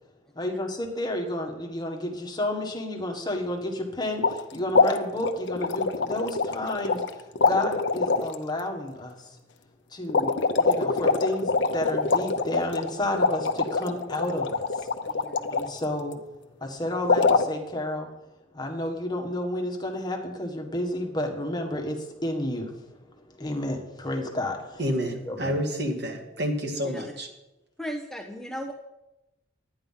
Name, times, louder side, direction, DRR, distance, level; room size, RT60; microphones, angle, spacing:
voice 1, 0.3-9.4 9.9-14.9 15.5-16.2 16.6-18.1 18.5-23.1 23.4-24.8 25.2-25.6, left 1 dB, 20° left, 2 dB, 1.5 m, -31 dB
sound 1, 4.2-4.4 4.7-7.1 7.4-8.4 10.1-15.7 17.1-17.5, left 4 dB, 65° left, 0.8 m, -24 dB
voice 2, 15.1-15.6 23.4-23.6 26.8-27.0 27.8-28.7, equal, ahead, 2 dB, 0.7 m, -37 dB
voice 3, 24.8-27.3, equal, 60° right, 3 dB, 2.0 m, -29 dB
11.5 x 9.8 x 5.6 m, 0.98 s
head